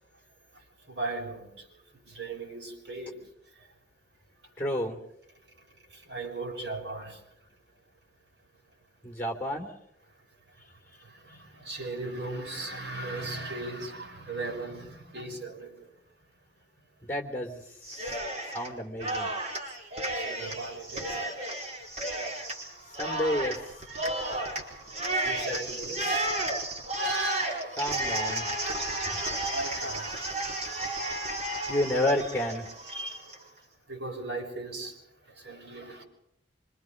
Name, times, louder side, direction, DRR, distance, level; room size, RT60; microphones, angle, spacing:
voice 1, 0.9-1.7 2.1-3.2 6.1-7.2 11.3-15.7 20.1-21.1 23.9-24.4 25.2-26.2 29.3-30.1 32.9-33.2 33.9-34.9 35.4-36.0, right 2 dB, 75° right, 6.8 m, -37 dB
voice 2, 4.6-5.0 9.0-9.7 17.0-17.6 18.5-19.3 23.0-23.6 27.8-28.5 29.1-29.2 31.7-32.7, left 1 dB, 10° left, 3.3 m, -30 dB
Cheering, 17.8-18.7 19.0-33.4, right 1 dB, 40° right, 4.6 m, -32 dB
26.0 x 25.0 x 5.4 m
head